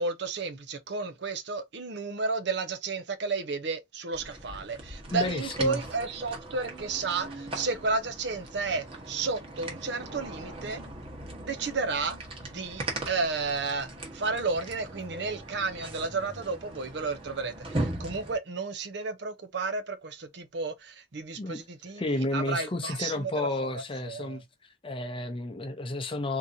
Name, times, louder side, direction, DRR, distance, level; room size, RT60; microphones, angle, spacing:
voice 1, 0.0-10.8 11.4-12.2 12.5-23.7 24.0-24.4, right 4 dB, 65° right, 0.6 m, -32 dB
sound 1, 4.1-18.4, right 1 dB, 30° right, 1.1 m, -39 dB
voice 2, 5.1-5.8 21.4-21.6 21.9-24.4 24.8-26.4, left 2 dB, 30° left, 0.6 m, -31 dB
3.7 x 2.8 x 2.6 m
head